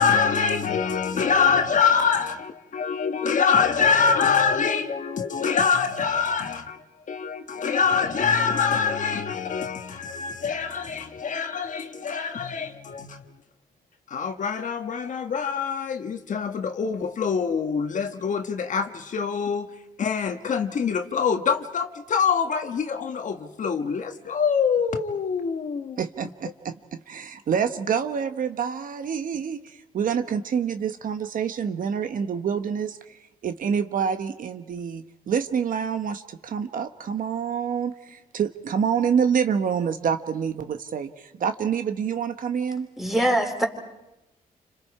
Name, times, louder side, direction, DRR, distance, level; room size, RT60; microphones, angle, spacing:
voice 1, 0.0-13.2 14.1-19.7 20.0-26.0, left 6 dB, 55° left, 6 dB, 1.4 m, -24 dB
voice 2, 26.0-42.9, right 7 dB, 60° right, 8 dB, 1.2 m, -27 dB
voice 3, 43.0-43.7, right 1 dB, ahead, 2 dB, 4.1 m, -22 dB
29.5 x 26.0 x 4.8 m, 0.93 s
cardioid pair, 100°, 16 cm